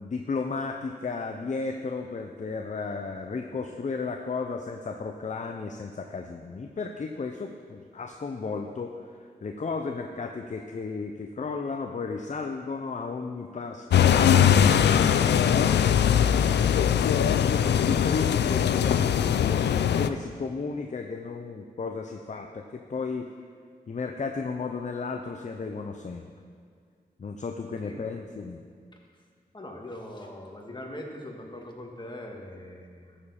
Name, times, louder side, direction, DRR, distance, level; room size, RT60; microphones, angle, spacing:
voice 1, 0.0-16.1 16.5-23.3 23.9-26.3 27.2-28.6, left 4 dB, 45° left, 4 dB, 0.7 m, -34 dB
sound 1, 13.9-20.1, left 9 dB, 90° left, 0.4 m, -21 dB
voice 2, 27.8-28.2 29.5-33.2, left 1 dB, 25° left, 0 dB, 1.9 m, -41 dB
12.5 x 7.0 x 4.3 m, 2.1 s
cardioid pair, 55°, 17 cm